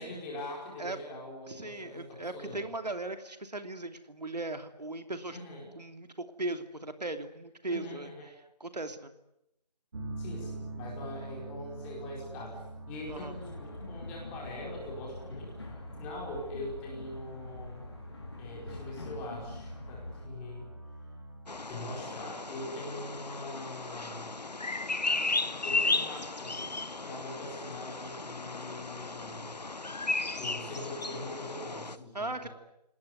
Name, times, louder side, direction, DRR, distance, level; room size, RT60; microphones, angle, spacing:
voice 1, 0.0-2.7 5.3-5.7 7.7-8.3 10.2-15.7 16.0-17.9 18.4-20.7 21.7-24.3 25.6-29.6 30.4-32.5, left 1 dB, 10° left, -2 dB, 4.8 m, -42 dB
voice 2, 1.5-5.4 5.8-8.1 8.6-9.1 13.1-13.3 32.1-32.5, right 2 dB, 80° right, 8 dB, 2.9 m, -38 dB
sound 1, 9.9-22.6, right 2 dB, 45° right, 4.2 m, -45 dB
sound 2, 13.1-20.3, left 3 dB, 40° left, 3.7 m, -45 dB
Bird vocalization bird call bird song, 21.5-32.0, left 3 dB, 80° left, 1.5 m, -35 dB
29.5 x 19.0 x 9.8 m, 0.84 s
figure-of-eight pair, 170°, 21 cm